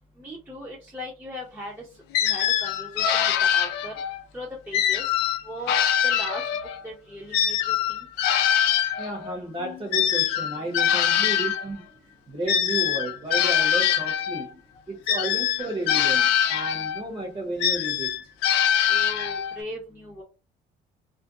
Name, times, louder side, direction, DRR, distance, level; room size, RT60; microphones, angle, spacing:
voice 1, 0.2-1.9 2.2-3.9 4.3-5.0 5.4-5.8 6.0-6.4 6.8-8.1 18.9-20.2, equal, 10° right, 0.7 m, -38 dB
sound 1, 2.1-4.2 4.7-6.8 7.3-11.7 12.5-14.4 15.1-17.0 17.6-19.6, left 10 dB, 85° left, 0.4 m, -23 dB
voice 2, 9.0-11.9 12.3-14.6 14.9-18.1, right 1 dB, 30° right, 1.0 m, -33 dB
2.5 x 2.1 x 2.6 m
cardioid pair, 110°, 17 cm